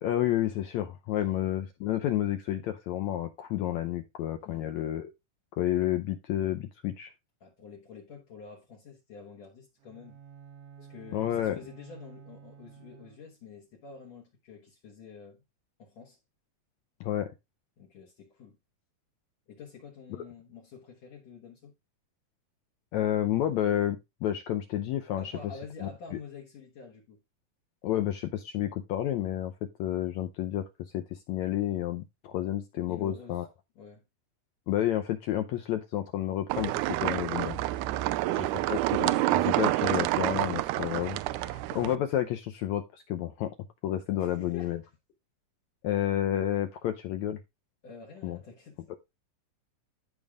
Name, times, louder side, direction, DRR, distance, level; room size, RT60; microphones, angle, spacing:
voice 1, 0.0-5.1 5.6-7.1 11.1-11.6 17.0-17.3 22.9-25.3 25.8-25.9 27.8-29.5 29.8-30.6 30.9-33.5 34.7-36.7 37.0-37.6 38.7-43.5 43.8-44.8 45.8-47.4 48.2-48.4, left 12 dB, 80° left, 1.7 m, -30 dB
voice 2, 7.4-10.2 10.8-15.4 15.8-16.2 17.8-18.6 19.5-21.7 25.2-27.2 32.9-33.4 33.8-34.0 37.9-38.7 44.2-44.8 47.8-48.8, left 5 dB, 60° left, 2.3 m, -48 dB
Bowed string instrument, 9.8-13.5, right 7 dB, 65° right, 1.6 m, -51 dB
sound 1, 36.5-42.0, right 17 dB, 80° right, 1.8 m, -28 dB
14.0 x 5.3 x 2.4 m
omnidirectional pair, 3.9 m